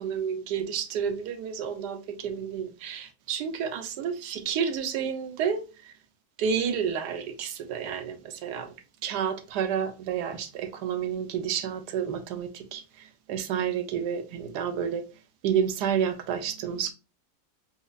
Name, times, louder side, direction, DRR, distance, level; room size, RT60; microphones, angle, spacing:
voice 1, 0.0-5.6 6.4-8.7 9.0-12.8 13.3-15.0 15.4-16.9, right 7 dB, 90° right, 1.3 m, -30 dB
4.3 x 2.8 x 2.4 m
omnidirectional pair, 1.7 m